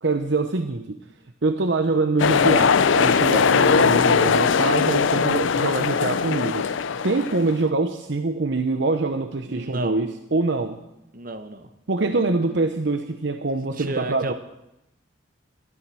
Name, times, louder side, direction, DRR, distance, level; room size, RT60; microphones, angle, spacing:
voice 1, 0.0-1.0 1.4-6.8 7.0-10.8 11.9-14.3, right 3 dB, 60° right, 7 dB, 0.8 m, -24 dB
sound 1, 2.2-7.5, left 6 dB, 75° left, 0.5 m, -20 dB
voice 2, 9.5-10.0 11.1-11.7 12.1-12.3 13.8-14.3, right 2 dB, 45° right, 7 dB, 1.2 m, -32 dB
13.0 x 12.0 x 6.2 m, 0.87 s
head